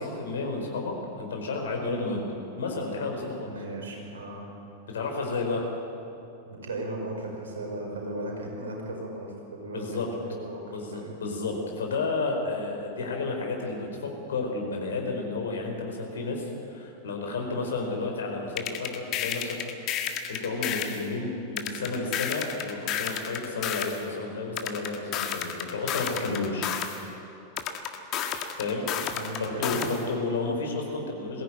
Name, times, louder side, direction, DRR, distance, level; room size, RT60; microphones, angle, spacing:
voice 1, 0.0-2.2 2.6-3.5 4.9-5.7 9.7-10.1 10.7-18.9 19.1-19.5 20.3-26.7 28.6-28.8 29.4-31.4, left 3 dB, 65° left, 1 dB, 4.7 m, -31 dB
voice 2, 3.4-4.5 6.5-11.1 26.1-26.4 29.1-30.1, right 1 dB, 65° right, 0 dB, 5.4 m, -37 dB
sound 1, 18.6-21.0 21.6-24.0 24.6-27.0 27.6-30.0, left 9 dB, 35° left, 1.8 m, -31 dB
21.5 x 16.0 x 9.2 m, 2.9 s
figure-of-eight pair, 90°, 0 cm